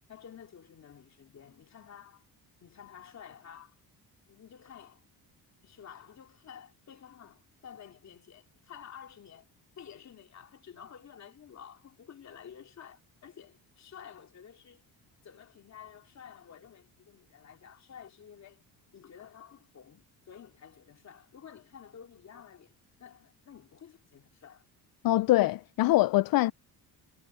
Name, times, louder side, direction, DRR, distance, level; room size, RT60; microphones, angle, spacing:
voice 1, 0.1-2.3 2.6-3.8 4.3-5.1 5.6-9.5 9.8-14.8 15.2-18.6 18.9-22.7 23.0-24.6, left 8 dB, 40° left, 2.7 m, -51 dB
voice 2, 25.0-26.5, left 17 dB, 60° left, 0.5 m, -23 dB
cardioid pair, 145°, 41 cm